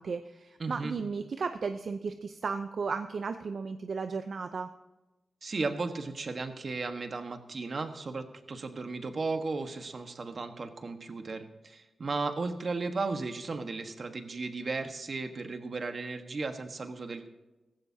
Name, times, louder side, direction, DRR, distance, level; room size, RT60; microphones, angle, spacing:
voice 1, 0.0-4.7, right 5 dB, 60° right, 8 dB, 0.6 m, -35 dB
voice 2, 0.6-1.0 5.4-17.3, right 3 dB, 45° right, 7 dB, 1.4 m, -35 dB
17.5 x 15.5 x 2.8 m, 1.1 s
wide cardioid pair, 135°, 0 cm